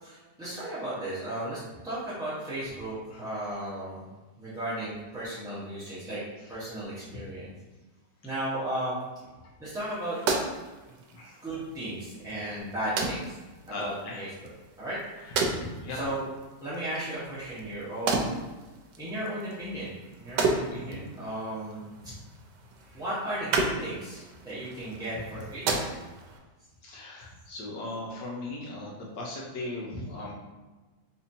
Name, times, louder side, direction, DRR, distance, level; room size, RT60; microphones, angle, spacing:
voice 1, 0.0-4.1 4.4-6.2 6.5-7.5 8.2-9.0 9.6-10.2 10.9-11.0 11.4-13.4 13.7-14.3 14.8-15.0 15.9-16.2 16.6-18.3 19.0-22.1 22.8-25.8, right 1 dB, 5° right, -12 dB, 0.5 m, -35 dB
sound 1, 9.7-26.4, right 3 dB, 80° right, 1.2 m, -34 dB
voice 2, 11.1-11.4 13.7-14.3 15.2-16.1 20.6-21.0 22.0-22.1 26.8-30.3, left 2 dB, 80° left, -3 dB, 1.4 m, -38 dB
4.2 x 2.8 x 2.6 m, 1.2 s
omnidirectional pair, 1.8 m